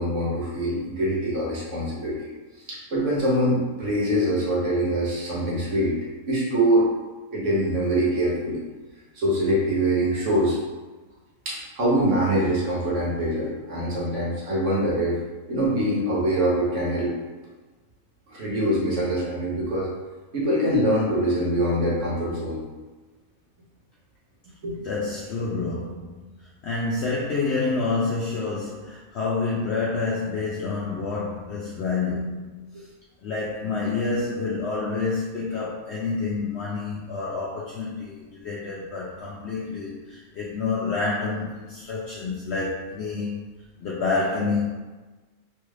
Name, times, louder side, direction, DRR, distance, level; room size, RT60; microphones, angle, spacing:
voice 1, 0.0-2.3 2.7-5.9 6.3-6.9 7.3-8.6 9.1-10.6 11.4-15.2 15.5-17.1 18.3-19.9 20.3-22.6 24.6-24.8, right 1 dB, 60° right, -6 dB, 1.1 m, -24 dB
voice 2, 24.8-26.3 26.6-32.9 33.2-43.5 43.8-44.7, left 3 dB, 70° left, -5 dB, 0.6 m, -28 dB
3.3 x 2.4 x 3.1 m, 1.3 s
omnidirectional pair, 1.6 m